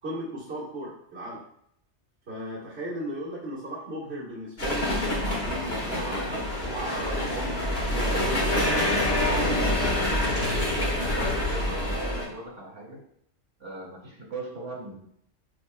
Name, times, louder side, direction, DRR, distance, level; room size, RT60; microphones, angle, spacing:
voice 1, 0.0-1.4 2.3-8.7, equal, 60° right, -7 dB, 1.9 m, -36 dB
sound 1, 4.6-12.3, left 1 dB, 55° left, 2.1 m, -26 dB
voice 2, 11.1-13.0 13.6-15.0, right 2 dB, 80° right, -3 dB, 2.6 m, -38 dB
12.0 x 4.3 x 2.3 m, 0.71 s
omnidirectional pair, 1.2 m